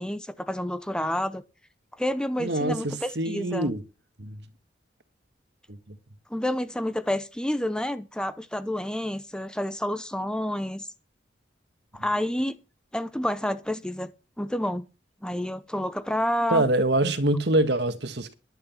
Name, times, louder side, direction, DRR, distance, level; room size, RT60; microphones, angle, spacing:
voice 1, 0.0-1.4 2.0-3.7 6.3-10.9 11.9-12.6 12.9-14.1 14.4-14.9 15.2-16.7, left 1 dB, 5° left, 0.7 m, -29 dB
voice 2, 2.4-3.8 4.2-4.4 5.7-6.0 16.5-18.3, right 1 dB, 60° right, 1.7 m, -25 dB
11.5 x 9.2 x 5.6 m
head